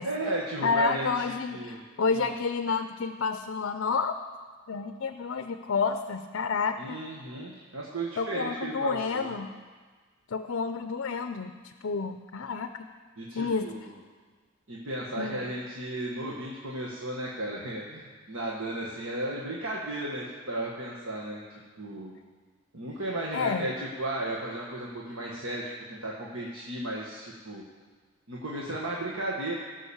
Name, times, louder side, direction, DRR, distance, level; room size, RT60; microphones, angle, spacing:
voice 1, 0.0-1.8 2.1-2.3 6.8-9.3 13.2-14.0 14.7-22.1 22.7-23.7 24.0-25.6 25.9-27.6 28.3-29.5, right 1 dB, 75° right, -4 dB, 1.6 m, -34 dB
voice 2, 0.6-4.1 4.7-7.0 8.2-9.5 10.3-12.9 13.3-13.7 15.2-15.4 23.3-23.7, left 5 dB, 60° left, 9 dB, 0.5 m, -30 dB
17.5 x 6.0 x 7.2 m, 1.5 s
head